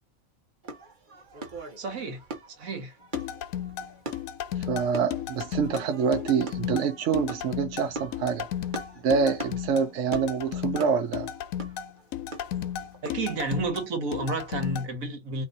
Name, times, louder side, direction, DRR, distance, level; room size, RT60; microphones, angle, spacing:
sound 1, 0.6-13.4, right 3 dB, 40° right, 1.0 m, -42 dB
voice 1, 1.8-2.2 2.6-2.9 13.0-15.4, right 3 dB, 85° right, 1.7 m, -31 dB
sound 2, 3.1-14.9, left 10 dB, 75° left, 1.0 m, -34 dB
voice 2, 4.7-8.5 9.0-11.3, right 6 dB, 65° right, 1.0 m, -26 dB
2.9 x 2.7 x 3.8 m
omnidirectional pair, 1.4 m